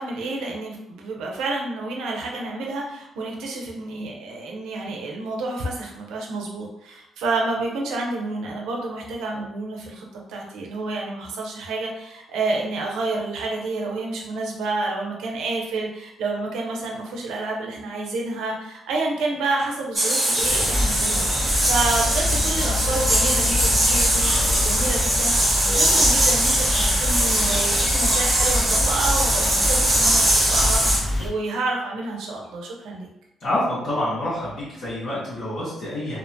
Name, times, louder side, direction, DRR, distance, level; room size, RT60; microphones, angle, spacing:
voice 1, 0.0-33.1, right 2 dB, 85° right, 0 dB, 0.5 m, -29 dB
sound 1, 19.9-31.0, right 1 dB, 15° right, 1.0 m, -21 dB
sound 2, 20.4-31.3, left 1 dB, 20° left, 0.6 m, -26 dB
voice 2, 33.4-36.2, left 1 dB, 75° left, -12 dB, 1.4 m, -27 dB
2.8 x 2.1 x 2.6 m, 0.87 s
cardioid pair, 90°, 0 cm